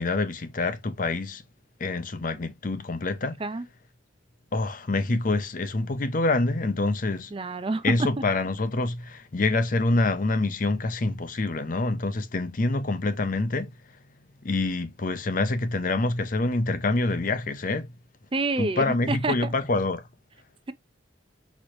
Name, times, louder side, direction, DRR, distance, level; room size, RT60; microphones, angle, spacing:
voice 1, 0.0-1.4 1.8-3.4 4.5-7.3 7.8-13.7 14.4-17.9 18.6-20.0, left 2 dB, 45° left, 0.6 m, -26 dB
voice 2, 7.3-8.1 18.3-19.5, right 3 dB, 30° right, 0.5 m, -28 dB
5.3 x 3.1 x 3.0 m
head